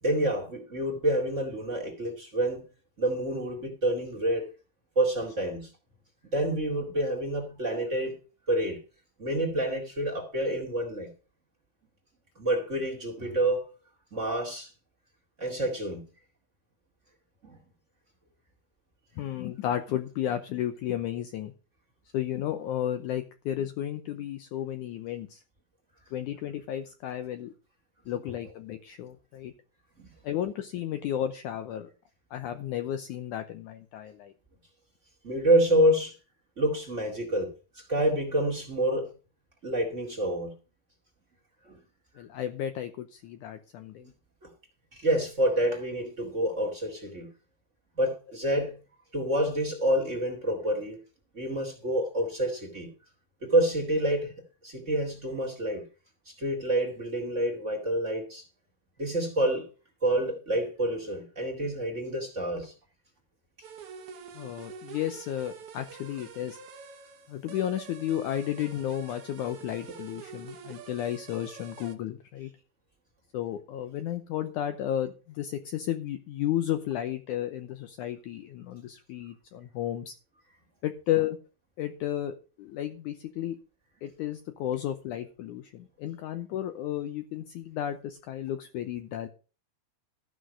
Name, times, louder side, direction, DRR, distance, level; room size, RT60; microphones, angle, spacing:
voice 1, 0.0-2.6 3.0-4.5 5.0-5.7 6.3-8.2 8.5-8.8 9.2-11.1 12.4-13.7 14.1-14.7 15.4-16.0 17.4-17.6 30.0-30.1 35.2-36.1 36.6-39.1 39.6-40.5 41.6-41.8 44.4-44.5 44.9-47.3 48.0-48.8 49.1-51.0 51.3-52.9 53.4-54.3 54.6-55.8 56.3-58.4 59.0-59.7 60.0-62.7, right 1 dB, 25° right, 2.0 m, -28 dB
voice 2, 19.2-21.5 22.1-25.4 26.1-27.5 28.1-29.5 30.2-31.9 32.3-34.3 42.2-44.1 64.3-66.6 67.3-72.5 73.3-80.1 80.8-81.4 81.8-83.6 84.0-89.3, left 11 dB, 75° left, 2.0 m, -33 dB
sound 1, 63.6-72.0, right 6 dB, 60° right, 1.5 m, -46 dB
14.5 x 6.2 x 6.2 m
omnidirectional pair, 4.1 m